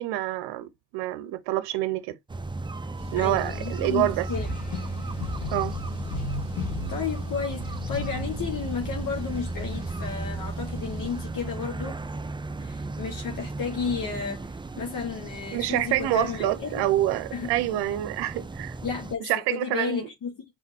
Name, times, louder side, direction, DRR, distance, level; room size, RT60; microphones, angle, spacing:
voice 1, 0.0-2.2 3.1-4.3 5.5-5.7 15.5-18.7 19.2-20.1, right 14 dB, 80° right, 0.7 m, -27 dB
sound 1, 2.3-19.1, right 2 dB, 15° right, 0.4 m, -35 dB
Car, 3.0-11.2, equal, 15° left, 2.0 m, -44 dB
voice 2, 3.2-4.5 6.9-12.0 12.6-14.5 14.8-16.8 17.3-17.5 18.8-20.4, left 6 dB, 55° left, 1.4 m, -32 dB
sound 2, 4.3-9.9, left 3 dB, 90° left, 2.2 m, -36 dB
5.1 x 3.8 x 2.7 m
supercardioid pair, 65°, 39 cm